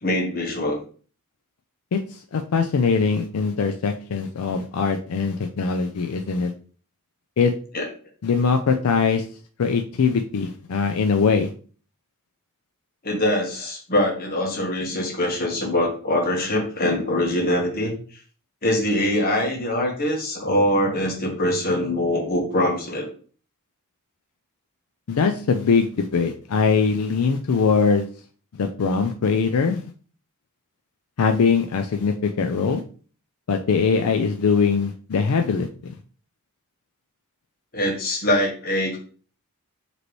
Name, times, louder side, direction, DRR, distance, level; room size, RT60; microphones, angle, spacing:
voice 1, 0.0-0.8 7.7-7.8 13.0-17.9 18.6-23.1 37.7-39.0, left 1 dB, 40° left, 1 dB, 1.3 m, -23 dB
voice 2, 1.9-6.5 7.4-7.5 8.2-9.2 9.6-11.5 25.1-28.1 28.5-29.9 31.2-32.8 33.5-35.9, left 5 dB, 80° left, 6 dB, 0.4 m, -22 dB
5.0 x 3.2 x 3.0 m, 0.40 s
head